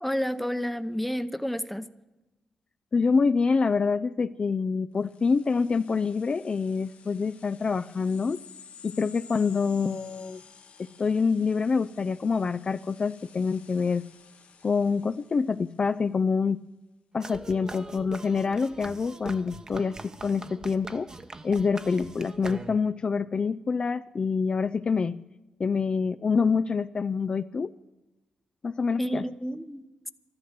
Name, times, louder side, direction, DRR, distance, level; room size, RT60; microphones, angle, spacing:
voice 1, 0.0-1.9 29.0-30.1, equal, 5° left, 12 dB, 0.8 m, -30 dB
voice 2, 2.9-8.4 8.8-10.4 10.8-14.0 14.6-16.6 17.1-20.0 20.2-21.1 21.4-25.2 25.6-27.7 28.6-29.2, left 5 dB, 40° left, 11 dB, 0.4 m, -26 dB
sound 1, 5.0-16.1, left 6 dB, 85° left, 1.7 m, -53 dB
sound 2, 17.2-23.0, right 2 dB, 30° right, 1.0 m, -42 dB
13.0 x 11.5 x 7.3 m, 1.0 s
cardioid pair, 95°, 2 cm